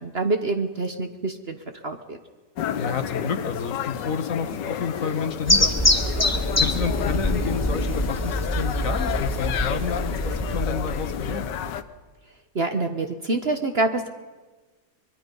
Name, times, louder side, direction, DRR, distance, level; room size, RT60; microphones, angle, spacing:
voice 1, 0.0-1.6 1.8-2.2 12.5-14.1, right 2 dB, 40° right, 7 dB, 1.1 m, -26 dB
sound 1, 2.6-11.8, left 9 dB, 90° left, 1.5 m, -31 dB
voice 2, 2.8-6.0 6.6-11.5, left 6 dB, 55° left, 9 dB, 1.5 m, -30 dB
sound 2, 5.5-11.8, left 1 dB, 10° left, 0.8 m, -25 dB
24.0 x 22.0 x 5.4 m, 1.3 s
omnidirectional pair, 1.8 m